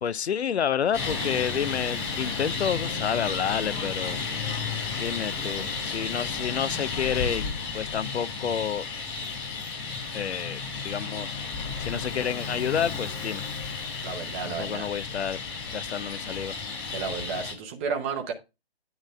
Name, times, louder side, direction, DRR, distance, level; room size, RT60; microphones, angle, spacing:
voice 1, 0.0-4.2 5.0-8.9 10.1-13.5 14.4-15.4 15.7-16.6, left 8 dB, 75° left, 0.5 m, -30 dB
Traffic noise roadway noise, 0.9-17.5, left 4 dB, 25° left, 2.6 m, -33 dB
voice 2, 14.0-14.9 16.9-18.3, right 5 dB, 10° right, 0.6 m, -32 dB
9.5 x 3.8 x 5.2 m
figure-of-eight pair, 145°, 32 cm